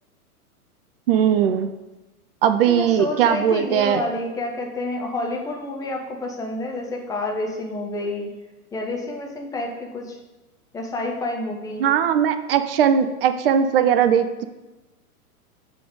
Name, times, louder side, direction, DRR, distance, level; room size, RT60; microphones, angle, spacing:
voice 1, 1.1-1.7 2.4-4.0 11.8-14.4, right 8 dB, 40° right, 9 dB, 0.5 m, -19 dB
voice 2, 2.6-8.3 8.7-10.2 10.7-11.9, left 2 dB, 10° left, 1 dB, 0.7 m, -29 dB
6.6 x 4.2 x 4.8 m, 1.1 s
figure-of-eight pair, 110°, 45 cm